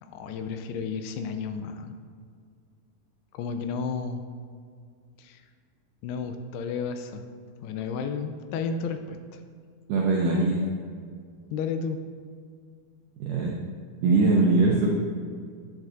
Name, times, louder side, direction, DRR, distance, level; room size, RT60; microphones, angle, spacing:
voice 1, 0.0-2.0 3.3-4.2 5.2-5.4 6.0-7.2 7.6-9.2 11.5-12.0, left 5 dB, 85° left, 7 dB, 2.5 m, -32 dB
voice 2, 9.9-10.6 13.2-13.5 14.0-14.9, right 3 dB, 80° right, -2 dB, 1.8 m, -21 dB
10.0 x 7.6 x 2.6 m, 2.1 s
omnidirectional pair, 4.6 m